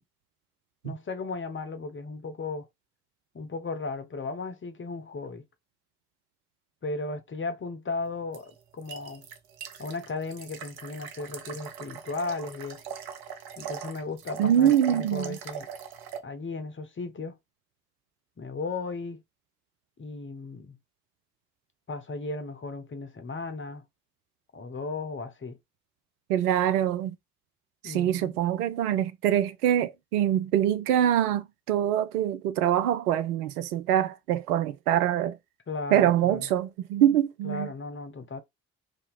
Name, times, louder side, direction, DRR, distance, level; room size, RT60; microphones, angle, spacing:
voice 1, 0.8-2.7 3.3-5.4 6.8-9.3 9.8-12.8 13.6-15.7 16.2-17.4 18.4-19.2 20.0-20.8 21.9-23.8 24.5-25.6 27.8-28.4 35.7-36.5 37.4-38.4, left 3 dB, 25° left, 0.9 m, -35 dB
sound 1, 8.3-16.2, right 7 dB, 55° right, 0.8 m, -41 dB
voice 2, 14.4-15.4 26.3-27.1 27.8-35.4 35.9-37.7, right 11 dB, 80° right, 0.5 m, -24 dB
2.8 x 2.8 x 4.0 m
figure-of-eight pair, 45°, 45 cm